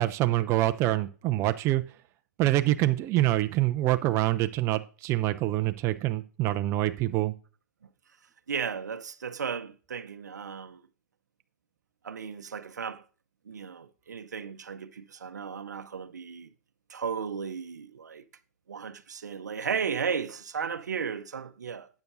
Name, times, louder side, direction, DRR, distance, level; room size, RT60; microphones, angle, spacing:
voice 1, 0.0-1.8 2.4-7.3, right 15 dB, 30° right, 0.5 m, -26 dB
voice 2, 8.5-10.8 12.0-13.0 13.5-16.5 16.9-18.2 18.7-21.9, right 6 dB, 80° right, 0.7 m, -35 dB
12.0 x 8.2 x 2.6 m
hypercardioid pair, 120°, 9 cm